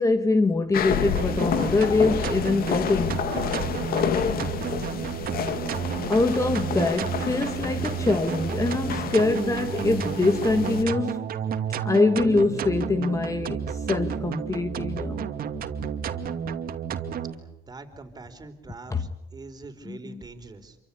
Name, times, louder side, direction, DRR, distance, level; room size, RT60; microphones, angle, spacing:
voice 1, 0.0-3.2 6.1-11.3 11.8-15.3 18.9-19.0 19.9-20.2, left 3 dB, 20° left, 1.6 m, -24 dB
sound 1, 0.7-10.8, left 8 dB, 60° left, 2.5 m, -30 dB
sound 2, 1.0-17.3, right 7 dB, 60° right, 2.5 m, -31 dB
voice 2, 17.7-20.8, right 3 dB, 25° right, 4.5 m, -43 dB
28.0 x 25.0 x 8.6 m
cardioid pair, 110°, 17 cm